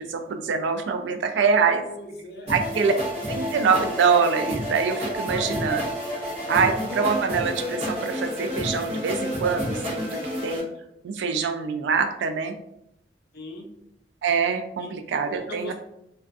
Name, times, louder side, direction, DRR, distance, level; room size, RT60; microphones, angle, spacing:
voice 1, 0.0-1.8 2.5-2.9 3.3-5.8 6.5-10.6 11.0-12.5 14.2-15.7, right 5 dB, 75° right, 6 dB, 0.3 m, -24 dB
voice 2, 1.9-2.5 5.3-5.5 6.1-6.7 13.3-13.7 14.8-14.9 15.3-15.7, left 2 dB, 55° left, 1 dB, 0.5 m, -39 dB
sound 1, 2.5-10.6, equal, 35° right, 0.7 m, -30 dB
2.4 x 2.3 x 2.4 m, 0.79 s
head